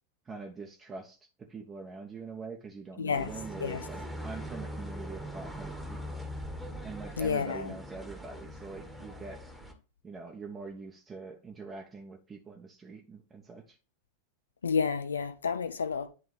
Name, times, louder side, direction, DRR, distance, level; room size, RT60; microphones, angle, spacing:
voice 1, 0.2-6.3 6.8-9.4 10.0-13.8, right 4 dB, 20° right, 1.1 m, -44 dB
voice 2, 3.0-3.3 3.6-3.8 7.2-7.7 14.6-16.1, left 5 dB, 70° left, 0.8 m, -30 dB
sound 1, 3.1-9.7, equal, ahead, 1.6 m, -41 dB
10.5 x 3.8 x 3.3 m
figure-of-eight pair, 90°, 0 cm